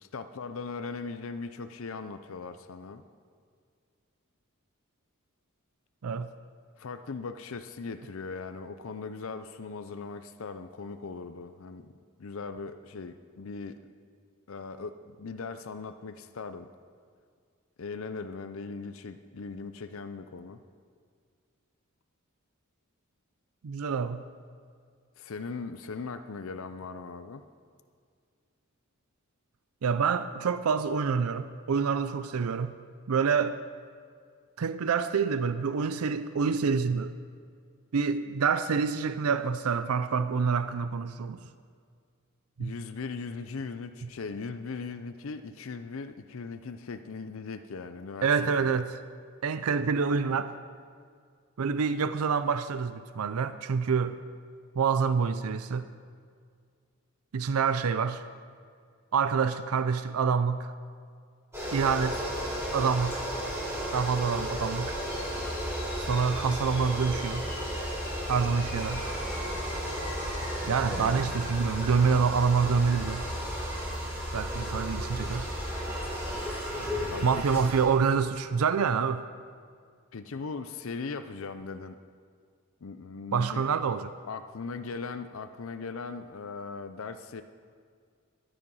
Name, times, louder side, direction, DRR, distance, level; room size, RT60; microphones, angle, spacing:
voice 1, 0.0-3.0 6.8-11.9 12.2-13.8 14.5-16.7 17.8-20.6 25.2-27.5 42.6-48.3 48.6-48.8 77.1-77.7 80.1-82.0 82.8-83.7 84.3-87.4, left 4 dB, 65° left, 9 dB, 0.6 m, -39 dB
voice 2, 23.6-24.2 29.8-32.7 33.1-33.6 34.6-37.1 37.9-41.4 42.6-42.7 48.2-49.0 49.4-50.5 51.6-54.2 54.8-55.9 57.3-58.2 59.1-60.7 61.7-62.2 62.7-63.2 63.9-65.0 66.0-67.4 68.3-69.1 70.7-73.2 74.3-75.5 77.2-79.2 83.3-84.1, right 5 dB, 90° right, 12 dB, 0.5 m, -27 dB
sound 1, 61.5-77.8, equal, 15° right, 4.2 m, -34 dB
sound 2, 65.0-76.3, left 1 dB, 50° left, 3.4 m, -39 dB
14.5 x 10.0 x 5.5 m, 2.1 s
head